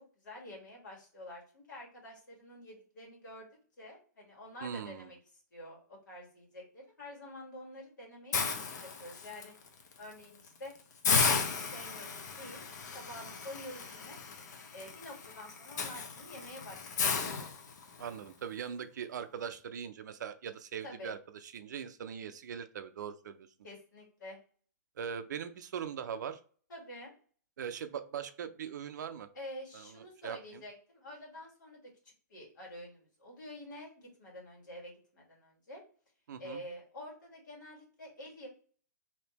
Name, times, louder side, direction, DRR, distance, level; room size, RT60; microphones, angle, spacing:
voice 1, 0.2-3.5 3.8-5.2 5.5-9.5 10.0-10.7 11.1-12.6 12.9-14.2 14.7-17.3 20.8-21.1 23.6-24.4 26.7-27.1 29.3-35.8 36.4-38.5, left 1 dB, 85° left, -2 dB, 1.7 m, -48 dB
voice 2, 4.6-5.1 18.0-23.5 25.0-26.4 27.6-29.3 29.7-30.6 36.3-36.6, right 8 dB, 75° right, 10 dB, 0.4 m, -41 dB
Hiss, 8.3-9.4 9.9-10.1 10.5-10.6 11.0-18.1, left 5 dB, 70° left, 0.7 m, -34 dB
3.4 x 2.8 x 2.9 m, 0.43 s
hypercardioid pair, 135°, 10 cm